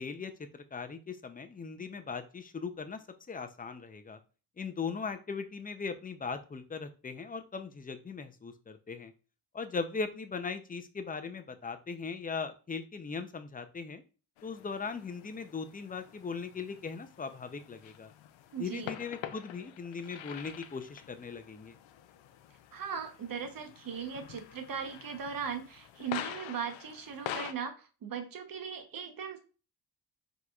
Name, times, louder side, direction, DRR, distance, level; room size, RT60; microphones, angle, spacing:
voice 1, 0.0-4.2 4.6-9.1 9.5-14.0 14.4-18.1 18.6-21.8, left 5 dB, 20° left, 9 dB, 0.6 m, -39 dB
sound 1, 14.4-27.5, left 10 dB, 85° left, 0.6 m, -46 dB
voice 2, 18.5-18.9 22.7-29.4, right 7 dB, 50° right, 6 dB, 1.0 m, -38 dB
4.6 x 3.9 x 2.4 m, 0.35 s
cardioid pair, 85°, 45 cm